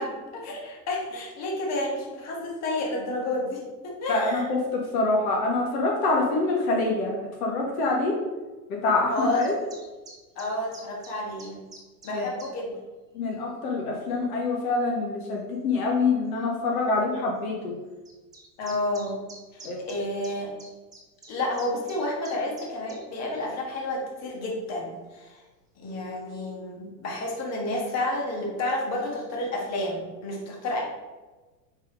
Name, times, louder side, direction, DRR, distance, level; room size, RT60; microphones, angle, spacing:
voice 1, 0.0-4.4 9.1-9.5 10.3-11.6 12.0-12.8 18.6-19.2 19.5-20.5 21.3-25.4 25.8-30.8, left 1 dB, 30° left, -1 dB, 1.6 m, -30 dB
voice 2, 4.1-8.1 8.7-9.5 12.1-12.3 13.1-17.8 19.6-19.8, left 3 dB, 55° left, -1 dB, 1.5 m, -26 dB
sound 1, 9.4-12.5 13.2-13.4 14.3-14.4 15.5-15.6 15.9-16.0 16.3-16.4 18.0-23.0, right 2 dB, 5° right, 1.0 m, -47 dB
5.4 x 3.8 x 5.0 m, 1.2 s
hypercardioid pair, 130°, 49 cm